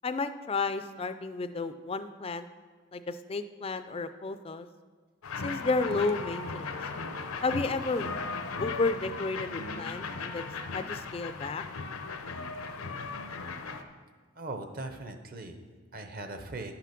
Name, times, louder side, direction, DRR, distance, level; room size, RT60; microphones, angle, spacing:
voice 1, 0.0-2.5 2.9-4.7 5.4-6.8 7.4-8.1 8.6-11.6, left 3 dB, 25° left, 11 dB, 0.3 m, -32 dB
sound 1, 5.2-13.8, left 4 dB, 85° left, 0.7 m, -37 dB
voice 2, 14.3-16.7, right 2 dB, 40° right, 7 dB, 0.8 m, -40 dB
11.0 x 5.8 x 5.9 m, 1.5 s
head